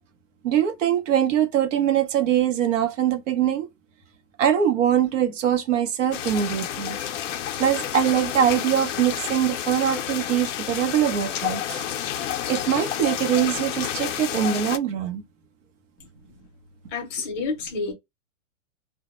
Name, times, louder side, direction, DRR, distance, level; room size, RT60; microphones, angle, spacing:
voice 1, 0.4-3.7 4.4-7.0 7.6-11.8 12.5-15.2, right 9 dB, 65° right, 0.8 m, -23 dB
sound 1, 6.1-14.8, left 10 dB, 65° left, 0.5 m, -30 dB
voice 2, 16.9-17.9, left 4 dB, 20° left, 0.6 m, -30 dB
2.2 x 2.1 x 2.9 m
hypercardioid pair, 165°, 40 cm